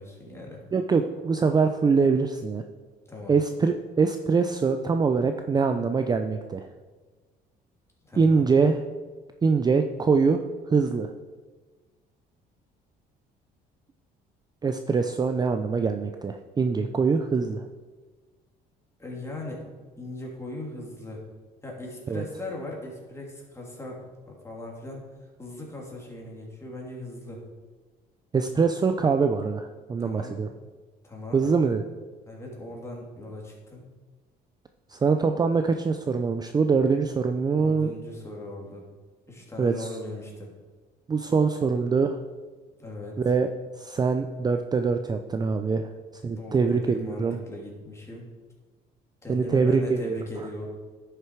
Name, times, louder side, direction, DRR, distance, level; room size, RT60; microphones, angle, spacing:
voice 1, 0.0-0.6 3.1-3.4 8.0-8.4 19.0-19.6 20.0-21.2 21.6-25.0 25.4-27.4 30.0-30.5 31.0-31.5 32.3-33.8 37.5-38.8 39.3-40.5 42.8-43.3 46.4-48.3 49.2-50.7, left 1 dB, 15° left, -2 dB, 2.8 m, -39 dB
voice 2, 0.7-2.6 3.3-6.7 8.2-8.8 9.4-10.4 10.7-11.1 14.6-17.7 22.1-22.2 28.3-30.5 31.3-31.8 34.9-37.9 39.6-39.9 41.1-42.2 43.2-43.5 43.8-45.9 46.2-47.4 49.3-50.2, right 5 dB, 25° right, 7 dB, 0.5 m, -23 dB
11.0 x 6.7 x 4.6 m, 1.4 s
cardioid pair, 110°, 17 cm